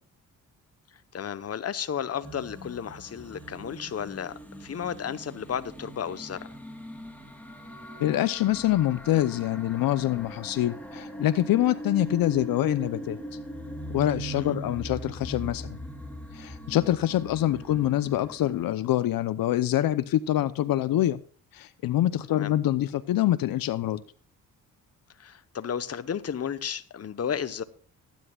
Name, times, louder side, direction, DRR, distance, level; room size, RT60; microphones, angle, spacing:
voice 1, 1.1-4.3 4.6-6.5 14.3-14.6 22.3-22.5 25.2-27.6, left 8 dB, 45° left, 12 dB, 1.0 m, -33 dB
sound 1, 2.2-18.6, right 1 dB, 5° left, 2.9 m, -40 dB
voice 2, 8.0-13.2 13.9-15.8 16.3-21.2 21.5-24.0, left 13 dB, 75° left, 16 dB, 0.7 m, -25 dB
18.5 x 10.0 x 2.4 m, 0.43 s
cardioid pair, 65°, 35 cm